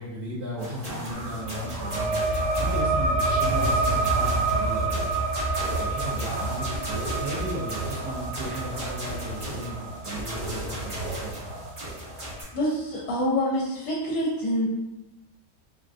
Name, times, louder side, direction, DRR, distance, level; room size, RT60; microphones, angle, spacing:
voice 1, 0.0-5.1 5.8-11.3, right 1 dB, 80° right, -7 dB, 1.2 m, -35 dB
sound 1, 0.6-12.4, right 1 dB, 40° right, 0.6 m, -35 dB
sound 2, 1.1-12.3, right 2 dB, 55° right, 0.9 m, -28 dB
voice 2, 12.5-14.7, equal, 75° left, -5 dB, 1.1 m, -26 dB
3.5 x 2.4 x 2.3 m, 0.98 s
omnidirectional pair, 1.6 m